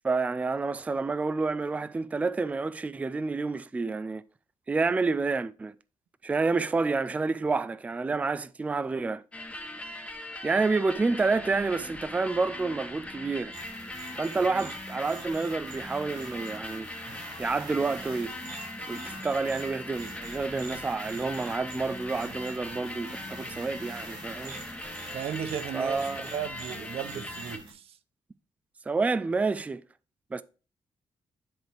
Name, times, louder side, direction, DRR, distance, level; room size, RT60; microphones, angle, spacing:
voice 1, 0.0-4.2 4.7-5.7 6.2-9.2 10.4-13.5 14.2-16.9 17.4-18.3 18.9-24.6 25.7-26.3 28.9-29.8 30.3-30.4, right 3 dB, 15° right, 0.3 m, -29 dB
sound 1, 9.3-27.6, left 2 dB, 10° left, 1.0 m, -41 dB
sound 2, 13.5-27.7, right 2 dB, 55° right, 4.0 m, -45 dB
voice 2, 25.1-28.0, right 9 dB, 90° right, 0.7 m, -36 dB
10.5 x 3.5 x 4.5 m
wide cardioid pair, 145°, 10 cm